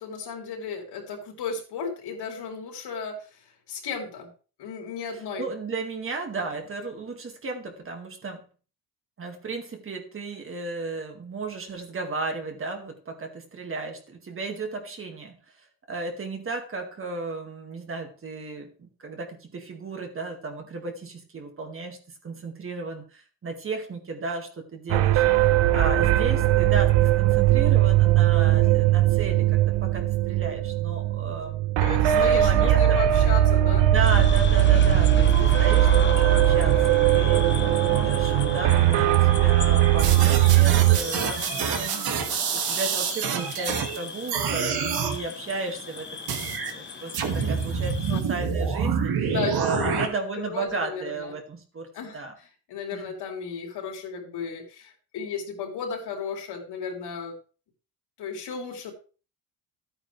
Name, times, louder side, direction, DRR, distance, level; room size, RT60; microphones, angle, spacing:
voice 1, 0.0-4.3 4.6-5.5 31.8-33.9 48.1-48.2 49.3-50.1 50.4-51.3 51.9-57.3 58.2-58.9, left 5 dB, 70° left, 2 dB, 3.8 m, -34 dB
voice 2, 5.4-8.4 9.2-33.0 33.8-42.1 42.5-48.0 48.3-51.9 52.1-52.3 52.9-53.1, right 3 dB, 30° right, 3 dB, 2.1 m, -34 dB
sound 1, 24.9-41.0, right 13 dB, 80° right, 0.9 m, -19 dB
sound 2, 34.0-48.2, left 6 dB, 25° left, 1.0 m, -37 dB
sound 3, 40.0-44.0 44.3-45.2 46.3-46.7 47.1-50.1, right 6 dB, 60° right, 2.3 m, -27 dB
14.0 x 9.0 x 3.3 m, 0.37 s
cardioid pair, 160°, 42 cm